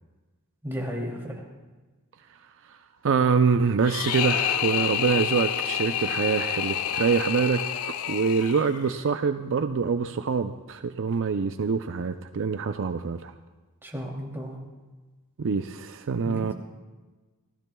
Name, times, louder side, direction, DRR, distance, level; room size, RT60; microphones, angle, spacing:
voice 1, 0.6-1.4 13.8-14.6 16.2-16.5, equal, 10° right, -2 dB, 2.7 m, -34 dB
voice 2, 3.0-7.6 8.1-13.3 15.4-16.5, right 5 dB, 60° right, 8 dB, 0.5 m, -25 dB
sound 1, 3.8-9.0, left 9 dB, 90° left, 0.6 m, -28 dB
28.0 x 15.0 x 2.3 m, 1.3 s
head